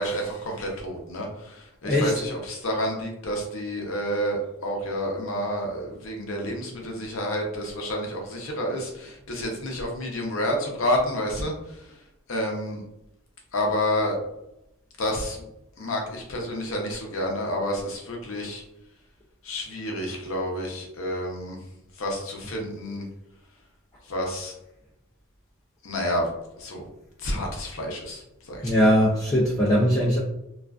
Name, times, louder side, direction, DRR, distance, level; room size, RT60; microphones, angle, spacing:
voice 1, 0.0-12.0 12.3-12.8 13.5-14.2 15.0-15.4 15.8-18.6 19.4-21.6 21.9-23.1 24.0-24.5 25.8-26.3 26.6-26.9 27.2-29.0, equal, 70° left, 1 dB, 0.6 m, -29 dB
voice 2, 28.6-30.2, equal, 15° left, -6 dB, 0.3 m, -20 dB
2.4 x 2.3 x 2.2 m, 0.87 s
head